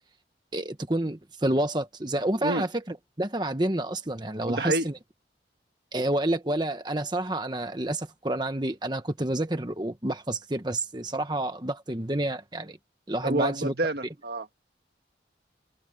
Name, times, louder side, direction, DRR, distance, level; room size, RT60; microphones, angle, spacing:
voice 1, 0.5-4.9 5.9-12.8 13.1-13.7, right 1 dB, 25° right, 1.2 m, -29 dB
voice 2, 4.5-4.9 13.2-14.6, right 1 dB, 60° right, 1.6 m, -28 dB
head